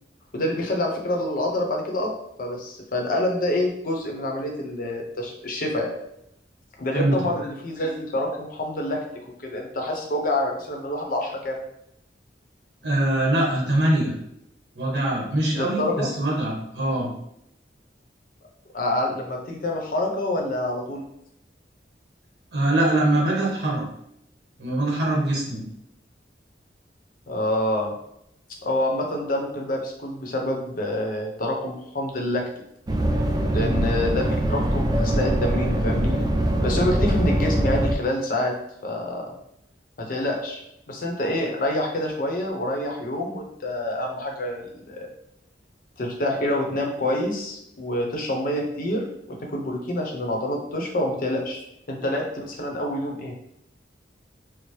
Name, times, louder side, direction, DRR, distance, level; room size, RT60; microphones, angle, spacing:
voice 1, 0.3-2.1 2.4-5.9 6.8-9.0 9.4-11.6 15.5-16.1 18.7-21.0 27.3-27.9 28.6-32.4 33.5-36.2 36.6-38.5 38.8-39.2 40.0-40.6 40.9-45.1 46.0-51.6 51.9-53.3, left 1 dB, 50° left, 1 dB, 0.7 m, -27 dB
voice 2, 12.8-14.1 14.7-17.1 22.5-23.8 24.6-25.6 33.6-33.9, right 1 dB, 65° right, -3 dB, 1.1 m, -23 dB
sound 1, 32.9-38.0, right 1 dB, 25° right, 0.3 m, -23 dB
4.5 x 2.0 x 3.1 m, 0.77 s
head